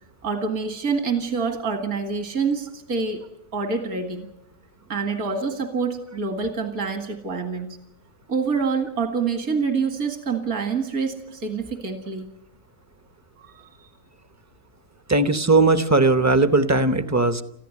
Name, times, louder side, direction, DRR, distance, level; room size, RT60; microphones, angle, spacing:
voice 1, 0.2-3.2 3.5-4.3 4.9-7.7 8.3-12.3 13.4-13.9, right 5 dB, 65° right, 6 dB, 2.4 m, -26 dB
voice 2, 15.1-17.4, right 3 dB, 15° right, 10 dB, 0.6 m, -18 dB
22.0 x 15.0 x 9.6 m, 0.84 s
omnidirectional pair, 1.6 m